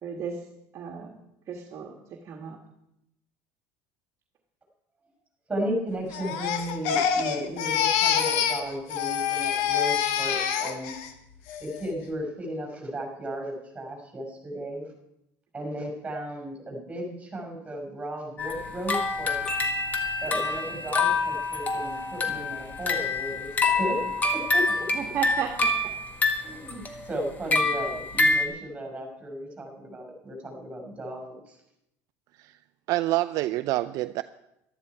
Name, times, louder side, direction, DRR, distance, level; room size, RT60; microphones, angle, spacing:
voice 1, 0.0-0.4 0.7-1.2 1.5-1.9 2.2-2.6 23.6-23.7 24.9-25.7 27.5-27.6, right 7 dB, 40° right, 2 dB, 1.5 m, -33 dB
voice 2, 5.5-11.0 11.6-14.9 15.5-19.4 20.2-23.5 23.8-24.0 24.3-24.7 26.4-31.6, equal, 15° right, 1 dB, 5.8 m, -35 dB
Crying sobbing, 6.1-8.6 8.9-11.1 11.5-11.9, left 8 dB, 80° left, 1.4 m, -26 dB
sound 1, 18.4-28.5, left 3 dB, 25° left, 1.6 m, -27 dB
sound 2, 19.5-23.0, right 1 dB, 10° left, 3.0 m, -37 dB
voice 3, 32.9-34.2, right 17 dB, 60° right, 11 dB, 0.4 m, -26 dB
14.0 x 12.5 x 4.8 m, 0.82 s
cardioid pair, 125°, 7 cm